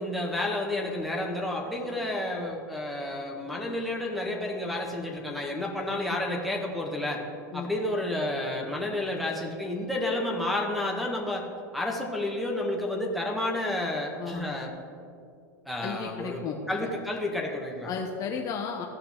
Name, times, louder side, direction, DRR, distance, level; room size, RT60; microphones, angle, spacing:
voice 1, 0.0-7.2 7.5-11.4 11.7-14.7 15.6-16.4 16.7-17.9, left 1 dB, ahead, 0 dB, 1.7 m, -30 dB
voice 2, 15.8-16.9 17.9-18.9, left 6 dB, 35° left, 2 dB, 0.9 m, -34 dB
16.0 x 5.6 x 3.7 m, 2.4 s
hypercardioid pair, 115°, 10 cm